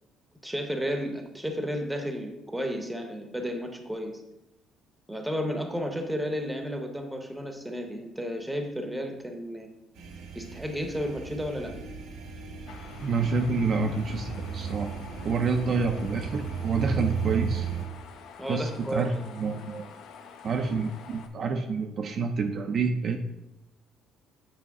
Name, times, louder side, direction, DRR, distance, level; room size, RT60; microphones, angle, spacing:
voice 1, 0.4-4.2 5.1-9.7 10.3-11.7 18.4-19.2 19.5-19.6, equal, 5° right, 4 dB, 0.7 m, -32 dB
sound 1, 10.0-17.9, right 7 dB, 75° right, 1.3 m, -35 dB
sound 2, 12.7-21.3, left 6 dB, 65° left, 0.7 m, -48 dB
voice 2, 13.0-14.9 15.2-17.7 18.5-19.9 20.4-23.2, right 4 dB, 40° right, 5 dB, 0.4 m, -28 dB
8.5 x 3.1 x 4.7 m, 0.93 s
cardioid pair, 150°, 0 cm